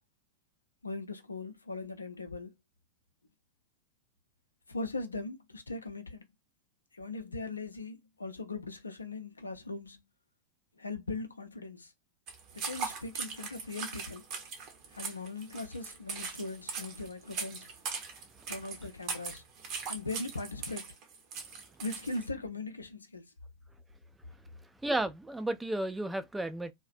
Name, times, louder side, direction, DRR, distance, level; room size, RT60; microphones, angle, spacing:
voice 1, 0.8-2.5 4.7-6.3 6.9-10.0 10.8-11.9 12.5-14.2 14.9-17.7 18.5-19.4 19.9-20.9 21.8-23.3, left 3 dB, 80° left, 0.4 m, -39 dB
sound 1, 12.3-22.3, right 5 dB, 40° right, 0.8 m, -40 dB
voice 2, 24.8-26.7, right 1 dB, 5° right, 0.3 m, -32 dB
2.4 x 2.1 x 2.4 m
figure-of-eight pair, 90°, 0 cm